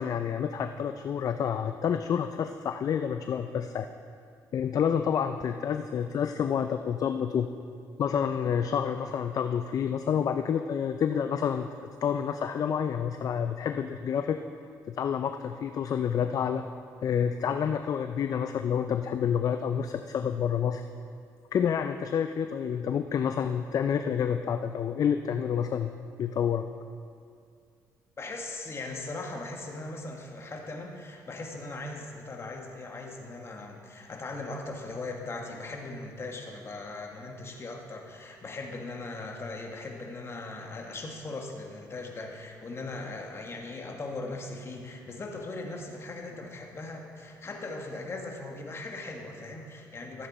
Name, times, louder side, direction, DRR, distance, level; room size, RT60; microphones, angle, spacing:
voice 1, 0.0-3.9 4.5-7.5 8.0-14.4 14.9-16.6 17.0-20.8 21.5-25.9 26.2-26.6, left 8 dB, 50° left, 8 dB, 0.4 m, -28 dB
voice 2, 28.2-50.3, left 2 dB, 35° left, 1 dB, 1.6 m, -39 dB
13.5 x 7.8 x 4.2 m, 2.3 s
cardioid pair, 85°, 7 cm